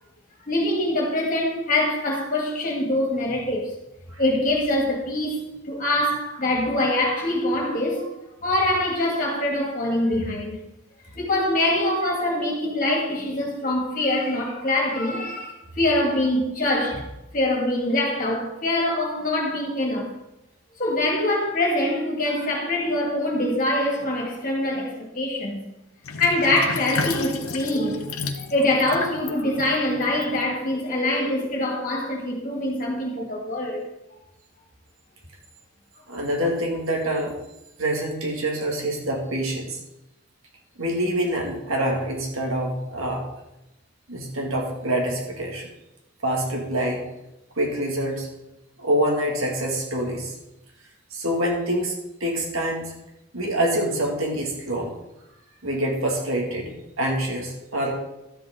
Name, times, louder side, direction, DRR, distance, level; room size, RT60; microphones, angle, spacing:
voice 1, 0.5-3.7 4.2-8.1 8.4-10.6 11.2-17.1 17.3-20.1 20.8-25.7 26.2-33.8, left 1 dB, 40° left, 2.2 m, -24 dB
Sink (filling or washing), 26.0-30.8, left 4 dB, 90° left, 0.9 m, -33 dB
voice 2, 36.1-37.3 37.8-39.8 40.8-43.3 44.1-45.7 46.2-47.1 47.6-48.3 48.8-50.3 51.1-51.9 52.2-52.9 53.3-54.9 55.6-57.9, right 1 dB, 75° right, 2.1 m, -26 dB
12.5 x 7.9 x 3.8 m
head